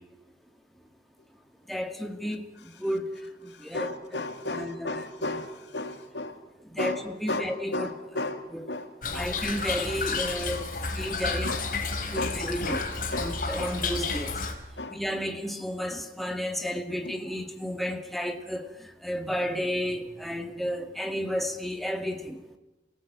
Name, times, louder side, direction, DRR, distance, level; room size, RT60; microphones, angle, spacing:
voice 1, 1.7-2.5 2.8-3.1 3.4-5.4 6.8-7.9 8.5-8.7 9.1-10.7 10.9-11.5 12.1-12.8 13.2-14.4 14.9-22.4, equal, ahead, 1.8 m, -32 dB
voice 2, 3.5-6.4 6.8-7.0 7.3-9.3 11.4-11.7 12.1-13.7 14.1-14.3 14.8-15.0 17.0-17.1, left 2 dB, 85° left, 3.1 m, -34 dB
Toilet flush / Trickle dribble, 9.0-14.5, left 4 dB, 50° left, 4.1 m, -31 dB
28.0 x 19.0 x 9.0 m
head